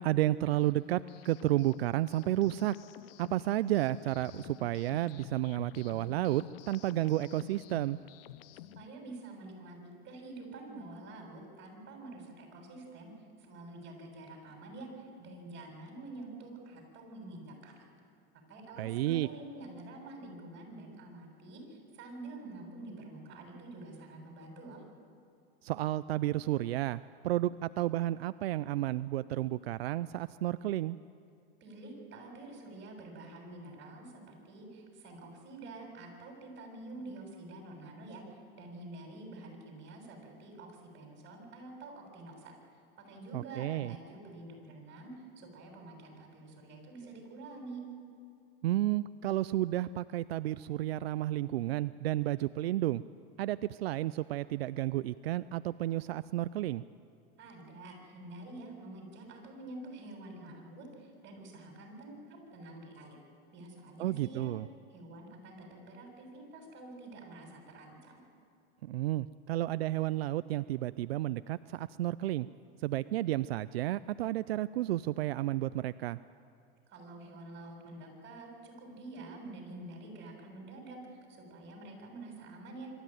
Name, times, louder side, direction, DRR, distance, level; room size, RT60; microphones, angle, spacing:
voice 1, 0.0-2.8 3.2-8.0 18.8-19.3 25.6-31.0 43.3-43.9 48.6-53.0 53.4-56.8 64.0-64.7 68.8-72.5 72.8-76.2, right 14 dB, 90° right, 16 dB, 0.5 m, -32 dB
sound 1, 0.6-8.9, left 15 dB, 70° left, 0.7 m, -51 dB
voice 2, 8.5-17.9 18.5-24.8 31.6-42.5 43.0-45.1 45.4-47.8 57.4-63.2 63.5-64.5 64.9-68.2 76.9-82.9, right 2 dB, 40° right, 2 dB, 7.3 m, -47 dB
25.5 x 13.5 x 9.1 m, 2.4 s
hypercardioid pair, 110°, 30 cm